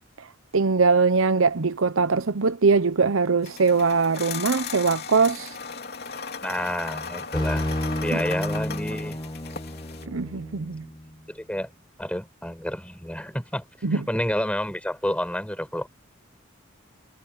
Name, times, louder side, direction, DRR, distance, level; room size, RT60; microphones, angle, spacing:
voice 1, 0.5-5.5 8.1-8.2 10.1-10.8 13.8-14.1, right 4 dB, 75° right, 0.8 m, -22 dB
sound 1, 3.4-10.1, left 6 dB, 50° left, 3.1 m, -36 dB
voice 2, 6.4-9.2 11.3-11.7 12.0-13.6 13.9-15.9, left 1 dB, 5° left, 6.7 m, -29 dB
sound 2, 7.3-11.1, left 1 dB, 20° left, 1.6 m, -30 dB
head